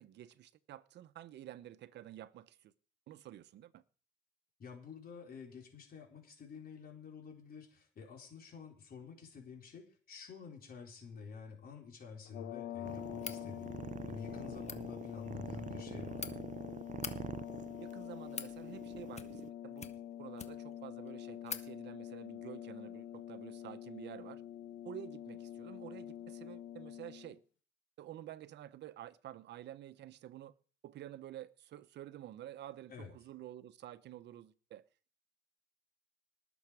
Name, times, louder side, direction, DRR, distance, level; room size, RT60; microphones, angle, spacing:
voice 1, 0.0-2.7 3.1-3.8 17.8-24.4 24.8-27.4 28.0-30.5 30.8-34.8, right 12 dB, 65° right, 0.9 m, -50 dB
voice 2, 4.6-13.8 14.1-16.4 32.9-33.1, left 5 dB, 50° left, 4.1 m, -50 dB
sound 1, 12.2-27.4, left 11 dB, 75° left, 1.2 m, -46 dB
sound 2, 12.9-19.5, right 9 dB, 40° right, 0.5 m, -46 dB
sound 3, 13.2-13.4 14.5-14.8 15.8-16.3 16.9-17.2 17.9-18.5 19.1-19.5 19.8-20.7 21.1-21.2 21.5-21.7, left 5 dB, 35° left, 1.5 m, -44 dB
19.0 x 7.2 x 4.9 m
supercardioid pair, 85°, 19 cm